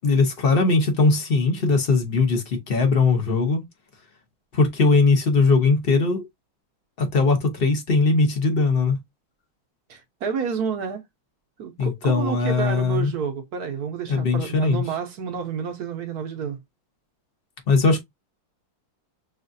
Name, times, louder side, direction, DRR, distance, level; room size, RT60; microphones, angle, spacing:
voice 1, 0.0-3.6 4.5-6.2 7.0-9.0 11.8-13.1 14.1-14.8 17.7-18.0, left 3 dB, 50° left, 0.7 m, -20 dB
voice 2, 9.9-11.0 11.6-16.6, right 6 dB, 65° right, 1.0 m, -29 dB
6.3 x 2.4 x 2.5 m
omnidirectional pair, 2.2 m